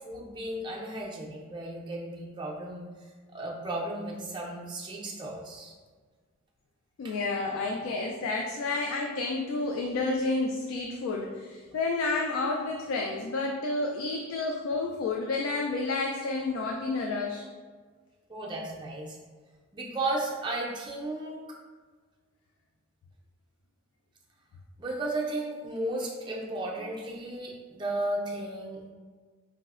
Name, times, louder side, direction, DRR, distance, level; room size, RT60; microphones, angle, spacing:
voice 1, 0.1-2.8 3.3-5.7 18.3-19.2 19.7-21.4 24.8-28.8, right 2 dB, 20° right, -2 dB, 0.4 m, -34 dB
voice 2, 7.0-17.5, left 3 dB, 80° left, 1 dB, 0.3 m, -30 dB
4.7 x 2.0 x 2.4 m, 1.5 s
head